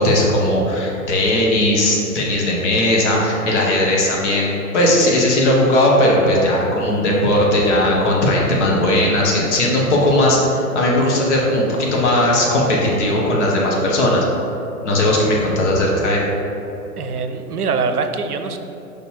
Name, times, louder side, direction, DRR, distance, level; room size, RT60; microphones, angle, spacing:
voice 1, 0.0-14.2 14.8-16.2, left 1 dB, 50° left, -3 dB, 1.5 m, -17 dB
voice 2, 17.0-18.6, right 4 dB, 85° right, 7 dB, 0.6 m, -23 dB
5.1 x 4.2 x 4.7 m, 3.0 s
figure-of-eight pair, 110°, 44 cm